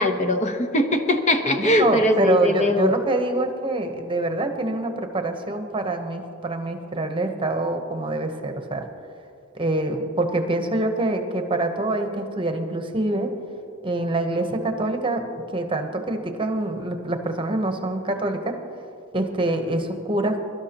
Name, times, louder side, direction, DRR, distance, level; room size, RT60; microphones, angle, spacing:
voice 1, 0.0-2.9, left 1 dB, 35° left, 6 dB, 0.9 m, -21 dB
voice 2, 1.6-8.9 9.5-13.3 13.8-15.2 15.5-18.6 19.1-20.6, right 2 dB, 25° right, 5 dB, 1.0 m, -25 dB
22.5 x 12.5 x 3.0 m, 2.5 s
head